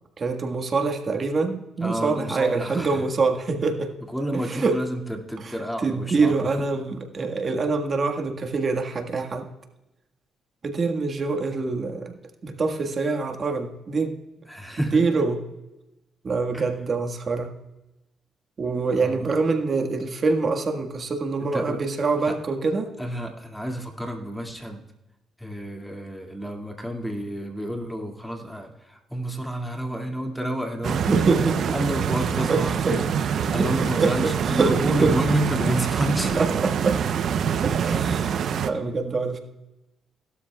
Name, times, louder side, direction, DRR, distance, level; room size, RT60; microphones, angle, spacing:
voice 1, 0.2-3.9 4.3-4.8 5.8-9.5 10.6-12.2 12.4-14.2 14.9-15.4 16.2-17.5 18.6-22.9 31.1-31.7 32.5-33.2 33.6-33.7 34.0-35.1 36.4-37.0 37.6-39.4, right 4 dB, 40° right, 4 dB, 1.6 m, -25 dB
voice 2, 1.8-3.1 4.1-6.5 14.4-15.0 16.5-16.7 19.0-19.3 21.5-21.8 22.2-22.3 23.0-24.9 25.4-31.1 31.4-33.1 33.5-36.6, right 1 dB, 5° left, 2 dB, 2.2 m, -30 dB
Stream, 30.8-38.7, right 7 dB, 65° right, 0.7 m, -25 dB
17.5 x 12.5 x 2.3 m, 0.95 s
cardioid pair, 90°, 0 cm